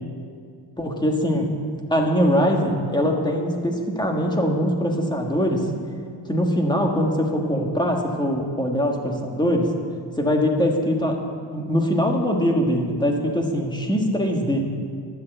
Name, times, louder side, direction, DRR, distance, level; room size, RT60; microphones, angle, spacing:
voice 1, 0.8-1.5 1.9-5.7 6.3-9.7 10.2-11.2 11.5-14.7, equal, 10° left, 1 dB, 1.7 m, -22 dB
12.5 x 11.5 x 8.0 m, 2.2 s
wide cardioid pair, 160°, 45 cm